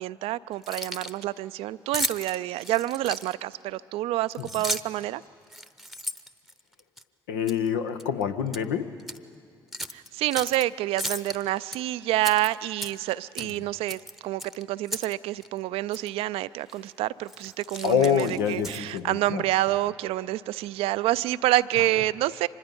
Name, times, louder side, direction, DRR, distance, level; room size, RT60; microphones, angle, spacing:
voice 1, 0.0-5.2 9.9-22.5, right 15 dB, 70° right, 17 dB, 0.4 m, -28 dB
Keys jangling, 0.5-1.2 1.9-3.5 4.3-5.0 5.5-7.0 7.5-7.7 8.0-8.6 9.0-9.2 9.7-10.6 11.0-11.8 12.2-13.1 13.4-13.6 13.9-15.1 15.4-15.5 15.9-16.1 16.7-16.9 17.3-19.0, equal, ahead, 0.8 m, -35 dB
voice 2, 7.3-9.0 17.8-19.4 21.8-21.9, left 8 dB, 85° left, 8 dB, 0.8 m, -26 dB
24.5 x 20.5 x 5.4 m, 2.4 s
hypercardioid pair, 50°, 10 cm